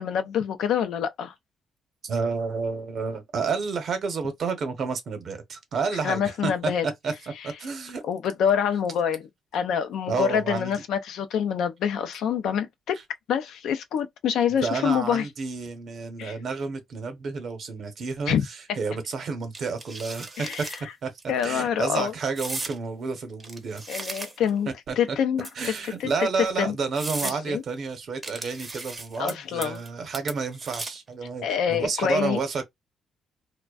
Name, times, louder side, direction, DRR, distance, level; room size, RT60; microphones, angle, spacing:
voice 1, 0.0-1.3 6.0-6.9 8.0-9.3 9.5-13.0 13.3-15.3 16.2-16.4 18.3-18.4 20.4-20.7 21.3-22.1 23.9-24.7 25.0-26.8 27.2-27.6 29.2-29.8 31.4-32.4, left 8 dB, 80° left, 0.4 m, -26 dB
voice 2, 2.0-8.0 10.1-10.7 14.6-18.4 18.8-20.7 21.0-21.1 21.4-23.8 24.7-25.2 25.6-32.6, right 5 dB, 60° right, 0.8 m, -30 dB
sound 1, 19.5-20.8 21.2-21.5 22.4-22.8 23.4-24.6 25.4-26.0 26.5-26.6 27.0-27.4 28.2-29.3 29.6-29.9 30.1-31.1, right 2 dB, 25° right, 0.6 m, -36 dB
2.5 x 2.1 x 2.3 m
cardioid pair, 90°, 0 cm